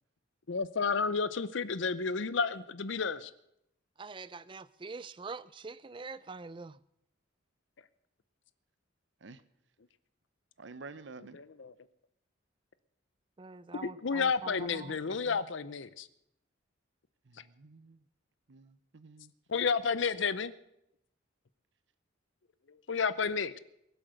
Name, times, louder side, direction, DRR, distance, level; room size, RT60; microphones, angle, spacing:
voice 1, 0.5-3.3 11.3-11.7 13.8-16.1 19.5-20.5 22.9-23.6, left 5 dB, 70° left, 15 dB, 0.7 m, -31 dB
voice 2, 4.0-6.8 13.4-15.0 15.2-15.4, right 4 dB, 25° right, 17 dB, 0.4 m, -44 dB
voice 3, 10.6-11.4 17.3-18.0 18.5-19.3, right 3 dB, 65° right, 15 dB, 0.8 m, -50 dB
22.0 x 7.8 x 6.5 m, 0.79 s
head